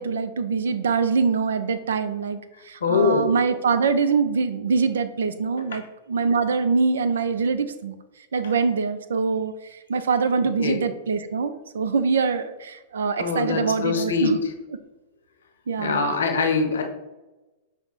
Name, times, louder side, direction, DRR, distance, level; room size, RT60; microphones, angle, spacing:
voice 1, 0.0-2.4 2.6-5.8 6.1-8.0 8.3-14.4 15.7-16.1, right 5 dB, 75° right, 11 dB, 0.4 m, -24 dB
voice 2, 2.8-3.2 10.6-10.8 13.2-14.5 15.8-16.8, left 5 dB, 75° left, 4 dB, 0.7 m, -23 dB
5.8 x 2.1 x 4.0 m, 1.1 s
hypercardioid pair, 100°, 0 cm